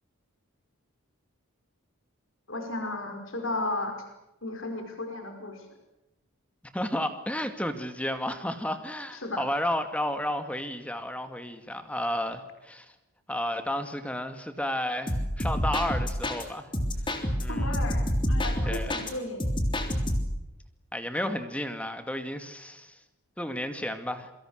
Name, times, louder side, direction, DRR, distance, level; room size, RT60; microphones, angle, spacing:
voice 1, 2.5-4.0 4.4-5.7 9.1-9.5 17.5-19.5, left 2 dB, 60° left, 5 dB, 5.3 m, -34 dB
voice 2, 6.7-12.9 13.3-16.7 17.4-17.7 18.6-19.0 20.9-23.0 23.4-24.3, left 1 dB, 5° left, 8 dB, 2.2 m, -32 dB
sound 1, 15.1-16.4 16.7-19.1 19.4-20.4, equal, 20° left, 3.4 m, -28 dB
28.0 x 24.5 x 6.6 m, 0.94 s
head